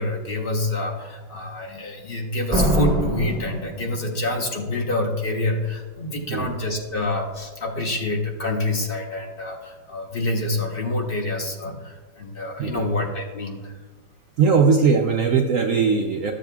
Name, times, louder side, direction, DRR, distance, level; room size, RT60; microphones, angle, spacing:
voice 1, 0.0-13.7, left 2 dB, 40° left, 1 dB, 0.8 m, -27 dB
Slam, 2.5-4.4, right 1 dB, 20° right, 1.0 m, -23 dB
voice 2, 12.6-12.9 14.4-16.3, right 5 dB, 90° right, 2 dB, 0.7 m, -19 dB
13.5 x 7.4 x 2.3 m, 1.4 s
omnidirectional pair, 2.0 m